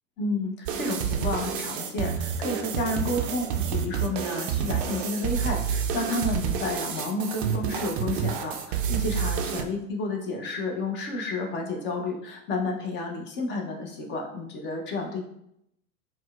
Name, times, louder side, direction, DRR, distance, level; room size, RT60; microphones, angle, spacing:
voice 1, 0.2-15.2, left 2 dB, 25° left, 2 dB, 0.5 m, -31 dB
sound 1, 0.7-9.6, right 8 dB, 40° right, 0.4 m, -29 dB
4.2 x 2.1 x 2.3 m, 0.76 s
figure-of-eight pair, 90°, 44 cm